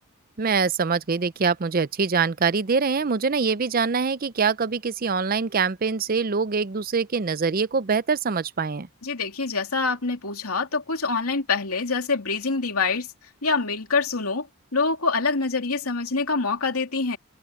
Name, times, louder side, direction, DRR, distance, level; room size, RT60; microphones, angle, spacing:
voice 1, 0.4-8.9, right 5 dB, 40° right, 0.6 m, -24 dB
voice 2, 9.0-13.1 13.4-14.5 14.7-17.2, left 4 dB, 85° left, 2.9 m, -25 dB
head